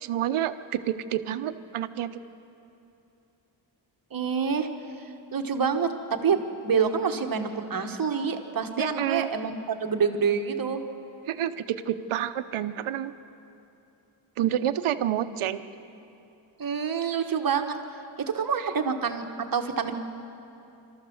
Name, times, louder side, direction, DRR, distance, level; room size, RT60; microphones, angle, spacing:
voice 1, 0.0-2.2 8.8-9.3 11.3-13.1 14.4-15.6 18.6-18.7, right 11 dB, 90° right, 11 dB, 0.9 m, -29 dB
voice 2, 4.1-4.7 5.3-10.8 16.6-17.8 18.2-19.3 19.5-19.9, right 6 dB, 45° right, 5 dB, 1.4 m, -27 dB
27.0 x 13.5 x 7.1 m, 2.8 s
wide cardioid pair, 135°, 49 cm